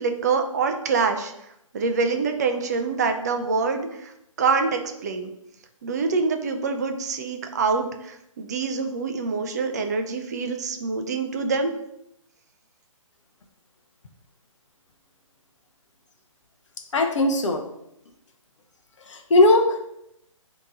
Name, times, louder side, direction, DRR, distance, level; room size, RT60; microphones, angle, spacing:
voice 1, 0.0-1.3 1.7-4.1 4.4-5.3 5.8-11.7, right 4 dB, 30° right, 5 dB, 0.4 m, -25 dB
voice 2, 16.9-17.6 19.1-19.9, left 2 dB, 60° left, 3 dB, 0.6 m, -19 dB
3.6 x 2.9 x 3.7 m, 0.79 s
figure-of-eight pair, 140°, 17 cm